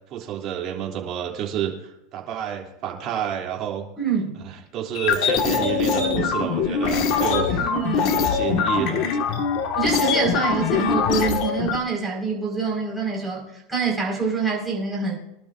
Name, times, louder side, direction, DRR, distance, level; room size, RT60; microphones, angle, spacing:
voice 1, 0.1-3.9 4.7-7.7 8.0-9.1, right 10 dB, 40° right, 0 dB, 3.1 m, -29 dB
voice 2, 4.0-4.4 7.3-8.2 9.8-15.1, right 5 dB, 5° right, -4 dB, 5.3 m, -26 dB
sound 1, 4.9-11.8, left 6 dB, 50° left, 1.9 m, -22 dB
24.0 x 12.0 x 2.7 m, 0.90 s
supercardioid pair, 145°, 0 cm